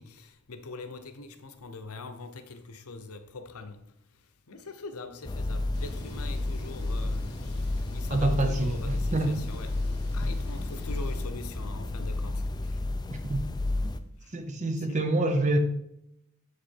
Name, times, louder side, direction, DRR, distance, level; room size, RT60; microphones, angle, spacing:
voice 1, 0.0-3.8 4.5-7.7 7.9-9.8 10.1-12.8 14.2-14.3 14.8-15.1, left 3 dB, 70° left, 0.8 m, -43 dB
sound 1, 5.2-14.0, left 2 dB, 20° left, 0.4 m, -31 dB
sound 2, 5.5-11.2, right 1 dB, 65° right, 1.0 m, -51 dB
sound 3, 5.7-11.3, left 1 dB, 50° left, 1.7 m, -47 dB
voice 2, 8.1-9.4 13.1-13.4 13.8-13.9 14.3-15.6, right 2 dB, 35° right, 0.7 m, -27 dB
7.5 x 5.0 x 4.5 m
head